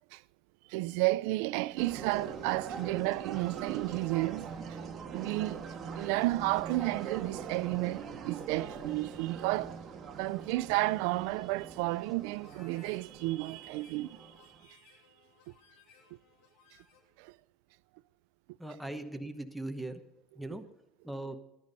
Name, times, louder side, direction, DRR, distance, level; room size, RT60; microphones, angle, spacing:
voice 1, 0.7-4.8 5.1-5.6 6.0-9.8 10.1-14.8 17.2-17.4, right 20 dB, 85° right, 0.4 m, -32 dB
sound 1, 1.8-14.6, right 6 dB, 35° right, 1.9 m, -43 dB
Harmonica, 12.2-17.1, left 6 dB, 80° left, 6.6 m, -62 dB
voice 2, 18.6-20.0 20.3-20.6 21.0-21.4, right 1 dB, ahead, 1.0 m, -39 dB
18.5 x 10.5 x 4.1 m
cardioid pair, 165°, 0 cm